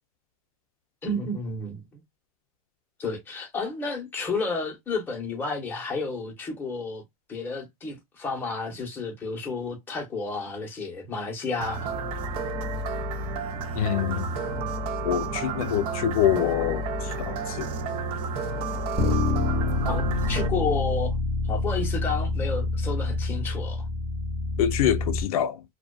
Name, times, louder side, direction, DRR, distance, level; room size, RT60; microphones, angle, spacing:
voice 1, 1.0-2.0 3.0-7.0 7.3-11.9 19.8-21.2 21.4-23.8, left 3 dB, 10° left, 0.8 m, -31 dB
sound 1, 11.6-20.5, right 3 dB, 30° right, 0.4 m, -31 dB
voice 2, 13.8-14.4 15.0-17.7 24.6-25.6, left 10 dB, 75° left, 0.4 m, -26 dB
Bass guitar, 19.0-25.2, left 2 dB, 15° right, 0.9 m, -27 dB
2.4 x 2.2 x 2.3 m
supercardioid pair, 155°, 19 cm